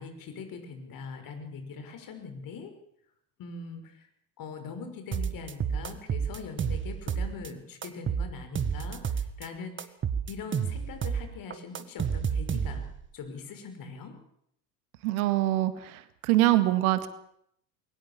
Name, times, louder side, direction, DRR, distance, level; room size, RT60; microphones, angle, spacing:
voice 1, 0.0-2.7 3.4-4.1 4.4-9.9 10.3-12.8 13.1-14.2, left 5 dB, 40° left, 7 dB, 5.8 m, -42 dB
sound 1, 5.1-7.5 7.8-9.5 9.8-13.0, right 7 dB, 25° right, 1.7 m, -30 dB
voice 2, 15.0-17.1, right 16 dB, 60° right, 12 dB, 1.9 m, -24 dB
22.5 x 19.0 x 7.3 m, 0.72 s
figure-of-eight pair, 75°, 50 cm